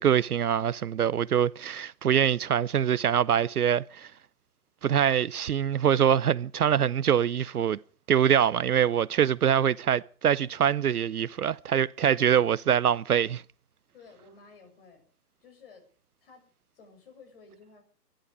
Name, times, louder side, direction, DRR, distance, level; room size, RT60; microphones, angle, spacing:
voice 1, 0.0-4.1 4.8-7.8 8.1-13.4, right 9 dB, 65° right, 0.7 m, -24 dB
voice 2, 13.9-15.1 15.4-15.9 16.2-16.5 16.7-17.8, left 4 dB, 35° left, 6.7 m, -53 dB
24.0 x 11.5 x 5.0 m
hypercardioid pair, 175°, 50 cm